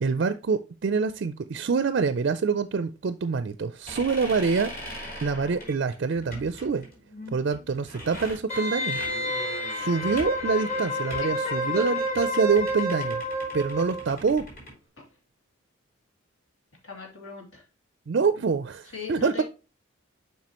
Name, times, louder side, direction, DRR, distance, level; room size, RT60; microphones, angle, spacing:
voice 1, 0.0-4.7 5.2-6.9 7.3-9.0 9.7-13.2 13.5-14.4 18.1-19.4, right 5 dB, 55° right, 12 dB, 0.4 m, -26 dB
sound 1, 3.9-14.7, equal, 50° left, 4.2 m, -41 dB
Wind instrument woodwind instrument, 8.5-14.0 14.4-14.5, left 1 dB, 30° left, 2.1 m, -30 dB
voice 2, 11.2-11.9 15.0-15.1 16.8-17.6 18.9-19.4, left 4 dB, 65° left, 0 dB, 2.7 m, -38 dB
7.5 x 5.6 x 2.9 m, 0.31 s
head